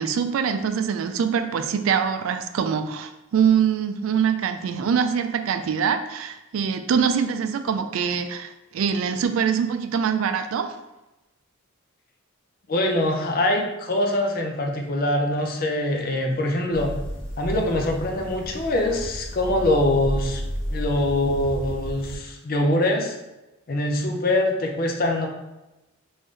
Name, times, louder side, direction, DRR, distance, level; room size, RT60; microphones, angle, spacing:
voice 1, 0.0-10.7, right 7 dB, 70° right, 8 dB, 0.3 m, -24 dB
voice 2, 12.7-16.9 17.4-20.4 20.7-23.1 23.7-25.3, left 1 dB, 45° left, 2 dB, 0.5 m, -23 dB
sound 1, 16.7-22.2, equal, 65° left, 1.2 m, -32 dB
3.6 x 2.6 x 3.2 m, 0.99 s
head